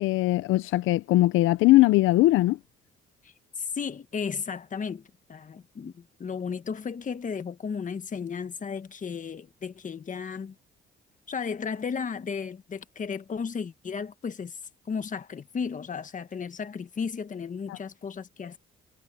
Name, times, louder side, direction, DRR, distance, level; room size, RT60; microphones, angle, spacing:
voice 1, 0.0-2.6 17.7-17.8, left 17 dB, 90° left, 0.5 m, -20 dB
voice 2, 3.2-10.6 11.3-14.6 14.9-18.6, left 6 dB, 40° left, 1.6 m, -34 dB
cardioid pair, 90°, 20 cm